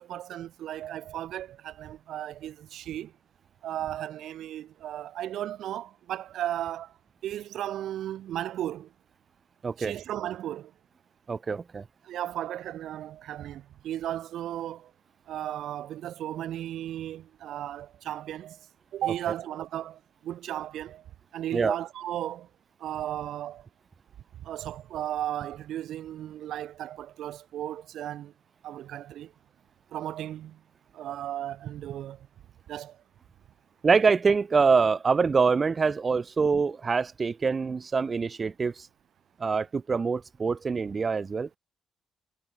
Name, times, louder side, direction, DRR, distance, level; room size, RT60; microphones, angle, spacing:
voice 1, 0.0-3.1 3.6-7.0 7.2-8.9 9.8-10.7 12.0-14.9 15.3-21.1 21.3-22.5 22.8-23.7 24.4-28.3 28.6-29.3 29.9-30.6 30.9-32.3 32.7-33.0, right 12 dB, 75° right, 1.7 m, -35 dB
voice 2, 9.6-9.9 11.3-11.8 21.5-21.8 33.8-38.9 39.4-41.6, right 5 dB, 35° right, 1.2 m, -25 dB
cardioid pair, 90°, 0 cm